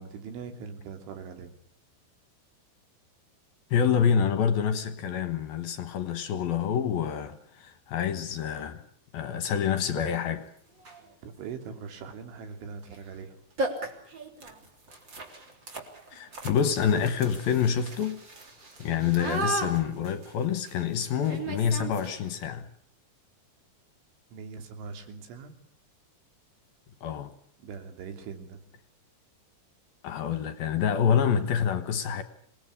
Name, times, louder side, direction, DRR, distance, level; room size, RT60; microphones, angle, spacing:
voice 1, 0.0-1.5 11.2-13.4 24.3-25.5 27.6-28.6, right 5 dB, 85° right, 5.5 m, -41 dB
voice 2, 3.7-8.8 9.1-10.5 16.1-18.2 18.8-22.7 27.0-27.3 30.0-32.2, left 7 dB, 65° left, 2.6 m, -27 dB
sound 1, 10.1-10.2 10.8-11.1 12.8-13.0 13.2-13.3 13.6-22.4, right 2 dB, 25° right, 3.6 m, -37 dB
27.0 x 20.0 x 9.9 m
omnidirectional pair, 5.4 m